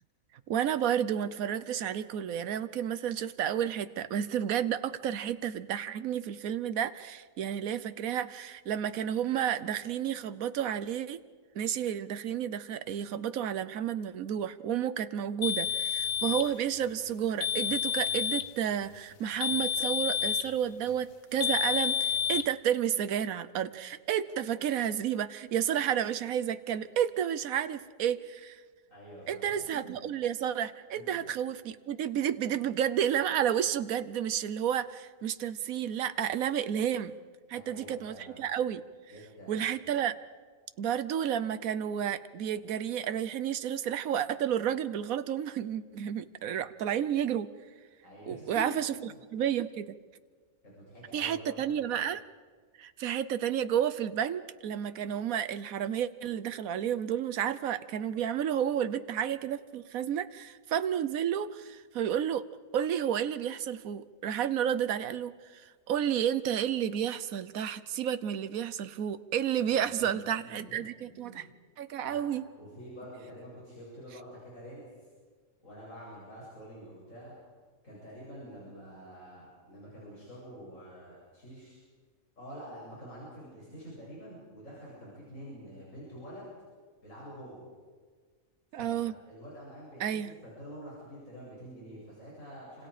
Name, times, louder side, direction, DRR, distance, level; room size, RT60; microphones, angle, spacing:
voice 1, 0.5-11.2 11.5-28.6 29.3-37.1 37.5-38.8 39.5-40.1 40.8-47.5 48.3-48.9 49.3-50.0 51.1-52.2 52.8-62.4 62.7-71.5 71.8-72.4 88.7-89.1 90.0-90.3, right 9 dB, 85° right, 13 dB, 1.3 m, -31 dB
sound 1, 15.4-16.5 17.4-18.5 19.4-20.5 21.4-22.5, left 9 dB, 85° left, 1.3 m, -30 dB
voice 2, 28.9-29.9 30.9-31.3 37.5-38.5 39.1-39.7 48.0-48.8 49.0-49.1 50.6-51.9 69.5-70.2 70.6-70.7 71.1-71.5 72.0-72.3 72.6-74.9 75.6-77.4 77.8-81.8 82.4-86.5 87.0-87.6 88.7-92.9, equal, 70° left, -6 dB, 8.3 m, -47 dB
28.5 x 26.0 x 5.0 m, 1.5 s
omnidirectional pair, 1.4 m